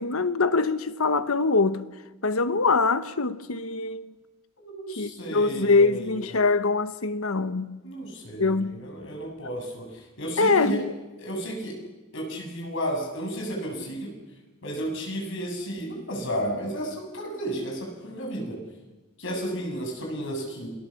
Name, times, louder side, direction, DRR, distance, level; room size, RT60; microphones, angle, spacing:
voice 1, 0.0-1.8 2.2-4.0 5.0-7.8 8.4-8.7 10.4-10.9, left 3 dB, 85° left, 1.2 m, -23 dB
voice 2, 4.6-6.3 7.8-10.8 11.2-11.7 12.1-14.1 14.6-18.6 19.2-20.7, right 1 dB, 60° left, 7.1 m, -33 dB
27.5 x 18.5 x 7.3 m
head